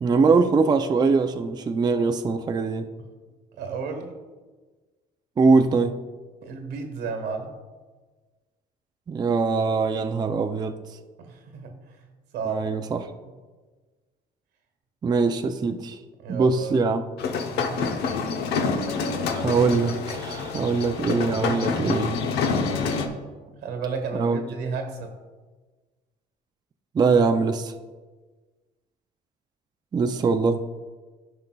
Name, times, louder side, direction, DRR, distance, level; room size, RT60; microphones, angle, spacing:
voice 1, 0.0-2.9 5.4-6.0 9.1-10.8 12.5-13.0 15.0-16.0 16.3-17.0 19.3-22.2 24.1-24.4 26.9-27.7 29.9-30.6, right 4 dB, 25° right, 7 dB, 0.4 m, -22 dB
voice 2, 3.6-4.1 6.4-7.6 11.2-12.1 12.3-12.6 13.2-13.3 16.2-16.8 17.3-17.9 23.6-25.1, right 5 dB, 85° right, 5 dB, 1.3 m, -33 dB
sound 1, 17.2-23.1, left 5 dB, 75° left, 0.8 m, -27 dB
13.5 x 5.4 x 2.3 m, 1.3 s
cardioid pair, 110°, 17 cm